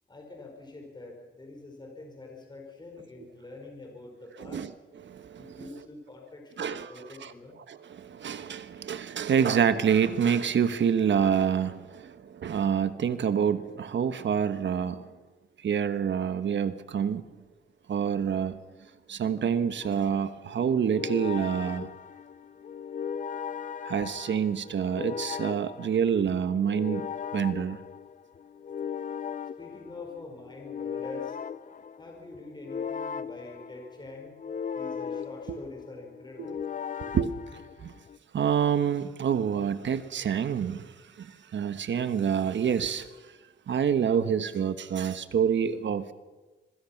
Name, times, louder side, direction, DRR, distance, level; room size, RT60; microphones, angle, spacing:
voice 1, 0.1-4.7 5.4-7.6 29.6-31.4 32.0-34.4 34.7-36.6, left 3 dB, 20° left, 5.2 m, -45 dB
voice 2, 4.4-4.7 5.0-5.6 6.6-7.3 7.7-15.1 15.6-17.3 17.9-18.6 19.1-21.9 23.8-27.1 27.3-27.8 35.5-35.6 36.4-36.5 37.0-37.3 37.8-37.9 38.3-43.1 43.7-46.1, right 7 dB, 65° right, 1.3 m, -27 dB
sound 1, 19.8-38.2, left 7 dB, 40° left, 0.7 m, -38 dB
26.0 x 23.0 x 5.9 m
wide cardioid pair, 130°, 20 cm